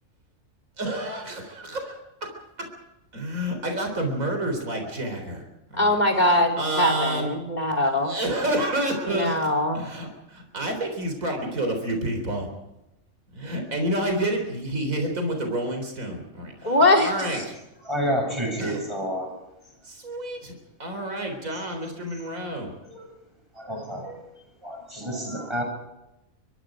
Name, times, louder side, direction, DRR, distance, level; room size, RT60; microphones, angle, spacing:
voice 1, 0.8-2.3 2.6-2.7 3.1-5.4 5.7-7.3 8.0-9.4 9.7-12.5 13.3-17.6 18.6-18.8 19.8-20.5 20.8-22.7, right 1 dB, 80° right, 4 dB, 4.3 m, -29 dB
voice 2, 5.8-8.1 9.1-9.8 16.6-17.1, left 1 dB, 30° left, 5 dB, 4.0 m, -21 dB
voice 3, 17.9-19.3 22.8-23.1 23.6-24.2 24.6-25.6, equal, 20° right, 2 dB, 7.4 m, -29 dB
25.0 x 23.0 x 5.0 m, 0.95 s
omnidirectional pair, 1.4 m